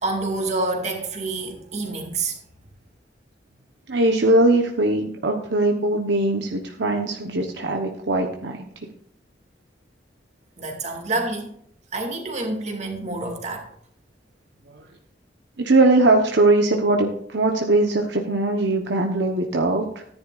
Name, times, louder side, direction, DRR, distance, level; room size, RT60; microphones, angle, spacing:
voice 1, 0.0-2.4 10.6-11.5 11.9-13.7, right 2 dB, 40° right, 3 dB, 2.2 m, -27 dB
voice 2, 3.9-8.6 14.7-14.8 15.6-20.0, right 2 dB, 70° right, 2 dB, 1.1 m, -20 dB
14.5 x 10.0 x 2.5 m, 0.68 s
head